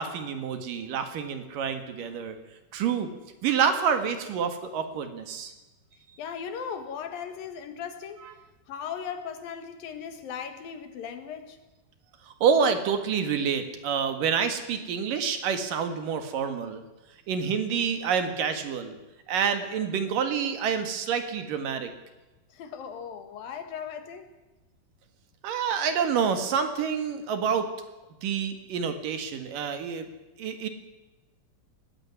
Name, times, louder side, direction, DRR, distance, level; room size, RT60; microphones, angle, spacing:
voice 1, 0.0-2.4 2.7-3.1 3.4-5.5 12.2-16.8 17.3-19.0 19.3-21.9 25.4-27.7 28.2-30.1 30.4-30.7, right 7 dB, 70° right, 8 dB, 3.2 m, -27 dB
voice 2, 6.2-8.2 8.7-11.6 22.5-24.3, left 7 dB, 75° left, 8 dB, 3.4 m, -37 dB
19.0 x 15.5 x 9.8 m, 1.1 s
omnidirectional pair, 4.2 m